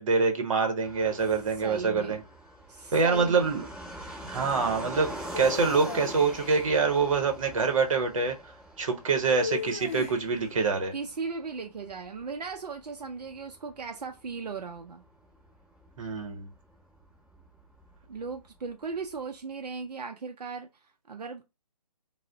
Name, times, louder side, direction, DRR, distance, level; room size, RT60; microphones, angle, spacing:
voice 1, 0.0-2.2 2.9-3.6 4.2-8.4 8.8-10.9 16.0-16.5, right 4 dB, 55° right, 0.8 m, -25 dB
Fixed-wing aircraft airplane, 0.8-19.2, right 1 dB, 5° right, 1.0 m, -45 dB
voice 2, 1.6-2.2 2.7-3.6 10.9-15.1 18.1-21.4, right 5 dB, 90° right, 0.4 m, -37 dB
sound 1, 5.3-6.7 9.3-10.5, left 6 dB, 20° left, 0.5 m, -36 dB
2.4 x 2.1 x 3.3 m
figure-of-eight pair, 150°, 20 cm